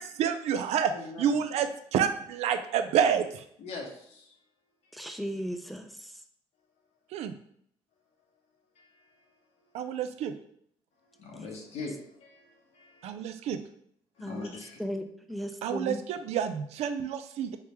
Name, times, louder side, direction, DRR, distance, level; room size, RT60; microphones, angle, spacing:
voice 1, 0.0-0.9 1.2-3.4 7.1-7.3 9.7-10.3 13.0-13.6 15.6-17.6, right 8 dB, 80° right, 9 dB, 0.4 m, -28 dB
voice 2, 0.9-1.4 3.6-4.4 4.8-5.0 8.8-9.3 9.7-9.9 11.0-13.3 14.2-14.8, left 3 dB, 80° left, 0 dB, 0.8 m, -43 dB
voice 3, 4.9-5.9 11.3-11.4 14.2-14.5 14.8-16.0, equal, ahead, 6 dB, 0.4 m, -36 dB
3.4 x 3.3 x 2.9 m, 0.68 s
cardioid pair, 75°, 11 cm